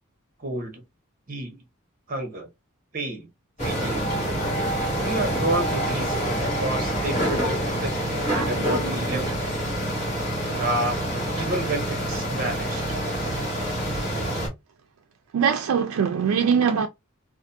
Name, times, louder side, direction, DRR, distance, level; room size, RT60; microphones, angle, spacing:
voice 1, 0.4-0.7 1.3-1.6 2.1-2.5 2.9-3.3 3.6-4.0 5.0-9.4 10.6-11.0 11.3-12.8, right 2 dB, 40° right, 0.9 m, -30 dB
sound 1, 3.6-14.5, equal, 35° left, 1.2 m, -26 dB
voice 2, 8.3-9.3 13.2-13.4 15.3-16.9, right 7 dB, 90° right, 0.4 m, -24 dB
2.5 x 2.5 x 2.6 m
head